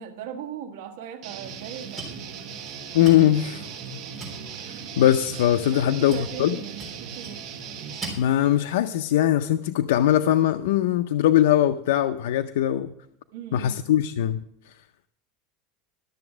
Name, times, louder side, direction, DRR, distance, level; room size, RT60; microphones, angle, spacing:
voice 1, 0.0-2.7 5.6-7.4 13.3-13.8, right 8 dB, 75° right, 5 dB, 1.5 m, -39 dB
Guitar, 1.2-8.1, right 7 dB, 45° right, 1.3 m, -38 dB
sound 1, 1.4-8.8, right 2 dB, 15° right, 3.6 m, -43 dB
voice 2, 2.9-3.7 4.6-6.6 8.2-12.9 13.5-14.4, left 12 dB, 90° left, 8 dB, 0.4 m, -21 dB
12.5 x 6.9 x 6.1 m, 0.75 s
supercardioid pair, 160°, 0 cm